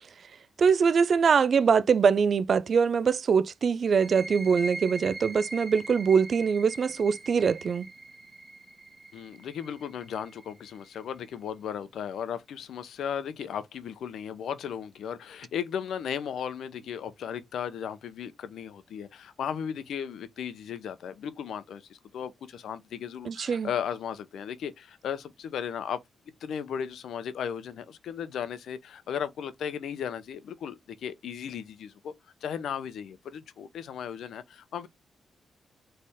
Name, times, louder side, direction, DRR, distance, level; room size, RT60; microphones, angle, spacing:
voice 1, 0.6-7.9 23.3-23.7, right 6 dB, 55° right, 0.4 m, -23 dB
sound 1, 3.9-11.3, right 2 dB, 20° right, 1.9 m, -42 dB
voice 2, 9.1-26.0 26.4-32.1 32.4-34.9, left 8 dB, 80° left, 0.6 m, -36 dB
4.1 x 3.3 x 3.6 m
cardioid pair, 75°, 0 cm